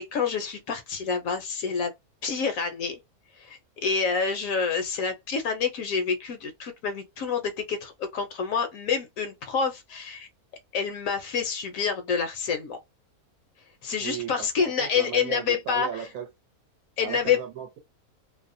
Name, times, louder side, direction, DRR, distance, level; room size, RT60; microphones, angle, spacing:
voice 1, 0.0-1.9 2.2-3.0 3.4-10.3 10.7-12.8 13.8-15.9 17.0-17.4, left 6 dB, 70° left, 0.9 m, -28 dB
voice 2, 14.0-16.3 17.0-17.8, right 9 dB, 75° right, 1.0 m, -36 dB
2.6 x 2.0 x 2.5 m
omnidirectional pair, 1.6 m